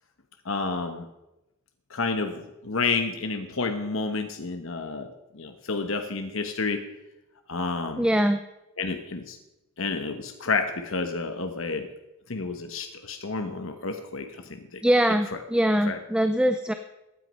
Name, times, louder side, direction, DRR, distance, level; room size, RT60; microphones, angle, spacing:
voice 1, 0.4-1.1 1.9-5.1 5.3-6.8 7.5-8.1 8.8-9.4 9.8-11.9 12.3-14.8 15.3-15.4 15.8-16.0, left 4 dB, 65° left, 6 dB, 1.1 m, -30 dB
voice 2, 8.0-8.4 14.8-16.7, equal, 5° right, 8 dB, 0.5 m, -22 dB
16.0 x 9.4 x 5.4 m, 0.95 s
head